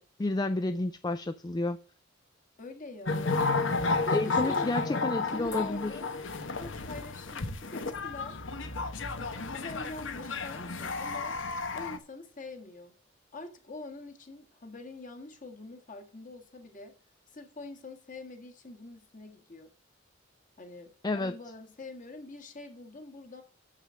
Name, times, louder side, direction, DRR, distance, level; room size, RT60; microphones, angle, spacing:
voice 1, 0.0-1.8 4.1-6.0 21.0-21.4, left 2 dB, 20° left, 0.4 m, -31 dB
voice 2, 2.6-3.7 4.0-6.1 6.6-8.4 9.1-11.4 11.7-12.9 13.3-17.0 17.3-19.7 20.6-23.4, left 2 dB, 40° left, 1.7 m, -45 dB
sound 1, 3.1-12.0, left 3 dB, 65° left, 1.0 m, -32 dB
7.4 x 6.6 x 6.3 m
head